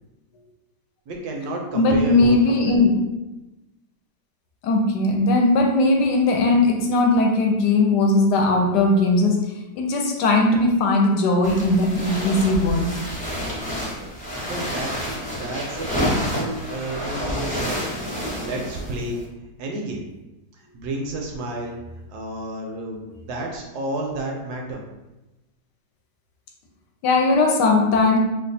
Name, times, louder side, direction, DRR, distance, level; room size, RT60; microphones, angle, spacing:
voice 1, 1.1-2.8 14.5-17.8 18.4-19.2 19.6-20.0 20.7-21.8 22.1-24.8, right 1 dB, 70° right, 1 dB, 1.0 m, -31 dB
voice 2, 1.7-2.9 4.6-9.4 9.8-12.9 27.0-28.2, left 2 dB, 75° left, 2 dB, 1.1 m, -18 dB
sound 1, 11.4-19.2, equal, 10° left, 0.3 m, -29 dB
2.9 x 2.3 x 3.9 m, 1.0 s
omnidirectional pair, 1.9 m